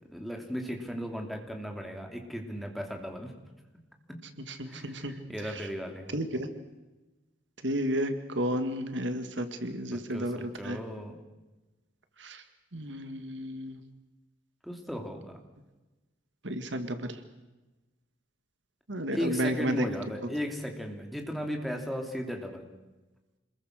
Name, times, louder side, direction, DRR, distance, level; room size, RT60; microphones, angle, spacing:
voice 1, 0.1-3.3 4.1-4.2 4.6-6.2 9.9-11.1 14.6-15.4 19.1-22.6, equal, ahead, 2 dB, 2.8 m, -36 dB
voice 2, 4.5-5.1 6.1-6.5 7.6-10.8 12.2-12.4 12.7-13.8 16.4-17.1 18.9-19.8, equal, 70° right, 8 dB, 2.0 m, -32 dB
27.0 x 21.5 x 6.6 m, 1.1 s
head